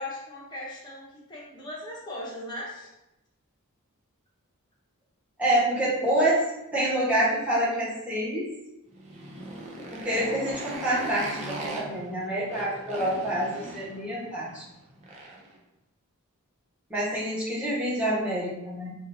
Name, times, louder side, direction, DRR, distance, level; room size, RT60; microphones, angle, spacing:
voice 1, 0.0-2.9, left 1 dB, 20° left, -5 dB, 0.9 m, -38 dB
voice 2, 5.4-6.4 6.7-8.5 9.9-14.6 16.9-19.0, right 1 dB, 5° right, -10 dB, 1.2 m, -27 dB
Motorcycle, 8.9-15.5, right 1 dB, 30° right, 0.5 m, -39 dB
3.8 x 2.5 x 2.7 m, 0.91 s
head